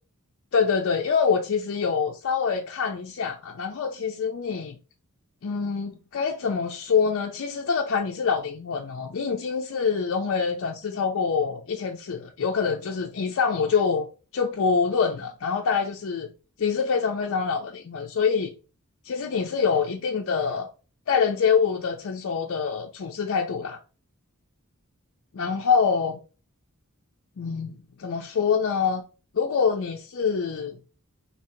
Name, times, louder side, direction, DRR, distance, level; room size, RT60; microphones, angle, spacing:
voice 1, 0.5-4.7 5.4-14.1 14.3-16.3 16.6-18.5 19.0-20.7 21.1-23.8 25.3-26.2 27.4-29.0 29.3-30.7, left 6 dB, 60° left, 0.5 m, -25 dB
2.8 x 2.8 x 4.4 m
head